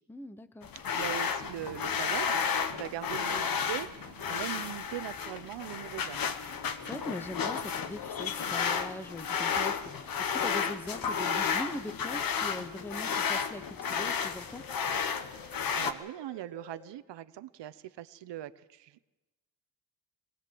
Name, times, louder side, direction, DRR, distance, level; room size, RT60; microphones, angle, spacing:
voice 1, 0.1-0.7 6.9-14.6, left 1 dB, 5° left, 12 dB, 0.8 m, -41 dB
sound 1, 0.6-15.9, left 6 dB, 45° left, 1.4 m, -32 dB
voice 2, 0.9-6.3 15.4-19.0, right 13 dB, 60° right, 15 dB, 1.0 m, -41 dB
sound 2, 1.4-4.9 6.0-9.5 10.6-13.7 14.5-16.8, left 3 dB, 80° left, 5.8 m, -53 dB
22.5 x 19.0 x 7.7 m, 1.1 s
cardioid pair, 145°, 48 cm